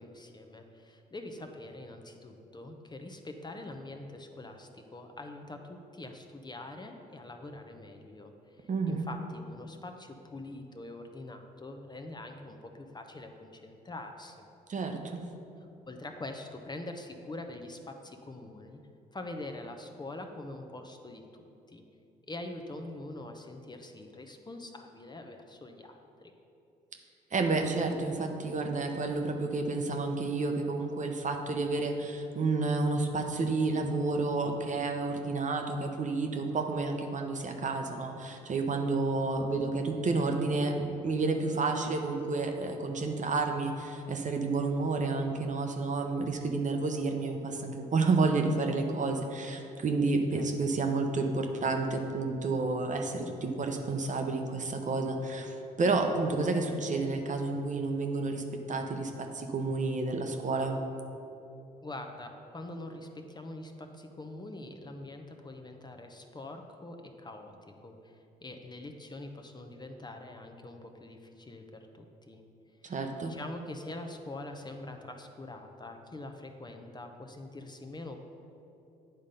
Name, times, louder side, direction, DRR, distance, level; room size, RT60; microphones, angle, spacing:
voice 1, 0.0-14.5 15.6-18.8 19.1-21.8 22.3-26.3 50.3-50.8 61.8-72.4 72.8-78.2, left 2 dB, 20° left, 5 dB, 0.7 m, -44 dB
voice 2, 8.7-9.1 14.7-15.2 27.3-60.8 72.8-73.4, right 3 dB, 40° right, 4 dB, 0.8 m, -30 dB
8.9 x 3.7 x 5.4 m, 2.8 s
hypercardioid pair, 50°, 19 cm